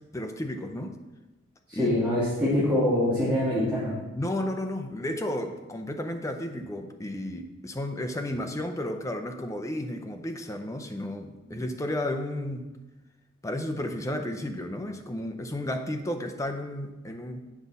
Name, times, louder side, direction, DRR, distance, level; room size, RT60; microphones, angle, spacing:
voice 1, 0.1-1.0 1.7-1.9 4.2-12.7 13.4-17.5, left 1 dB, 15° left, 5 dB, 0.6 m, -33 dB
voice 2, 1.7-3.9, left 1 dB, 5° right, -11 dB, 2.2 m, -24 dB
8.2 x 5.4 x 4.1 m, 1.1 s
head